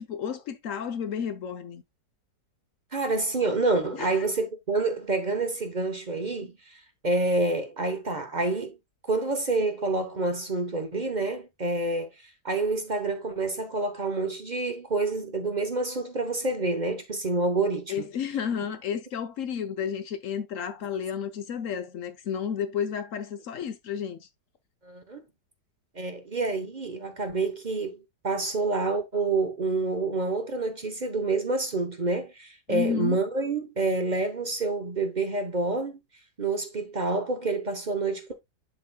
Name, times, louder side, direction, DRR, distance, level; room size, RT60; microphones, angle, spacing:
voice 1, 0.0-1.8 3.9-4.3 17.9-24.3 32.7-33.2, left 7 dB, 60° left, 0.9 m, -32 dB
voice 2, 2.9-8.8 9.1-18.1 24.8-25.2 25.9-36.0 36.4-38.3, right 3 dB, 35° right, 0.7 m, -28 dB
12.0 x 4.0 x 2.2 m
omnidirectional pair, 1.8 m